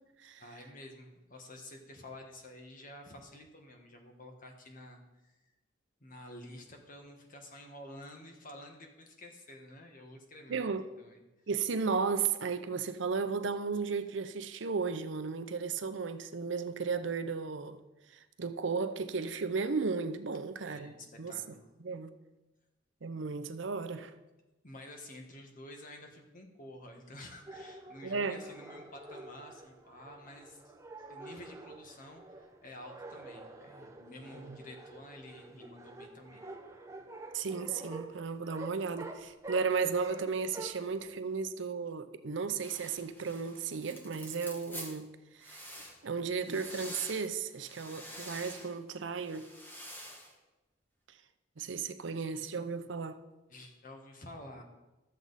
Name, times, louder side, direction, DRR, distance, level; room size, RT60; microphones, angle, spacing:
voice 1, 0.4-5.3 6.0-10.7 11.0-11.2 20.7-21.7 24.6-30.7 31.1-36.4 53.5-54.6, left 1 dB, 45° left, 1.5 m, -50 dB
voice 2, 10.5-10.8 11.5-17.8 18.4-21.4 21.8-22.1 23.0-24.1 28.0-28.4 34.3-34.6 37.3-45.1 45.4-45.6 46.0-49.5 51.6-53.2, right 5 dB, 70° right, 0.6 m, -34 dB
sound 1, 27.5-41.2, right 2 dB, 15° right, 0.8 m, -48 dB
sound 2, 42.6-45.0 45.4-46.0 46.4-47.3 47.6-48.7 49.2-50.3, equal, 10° left, 1.4 m, -47 dB
13.0 x 7.3 x 4.1 m
head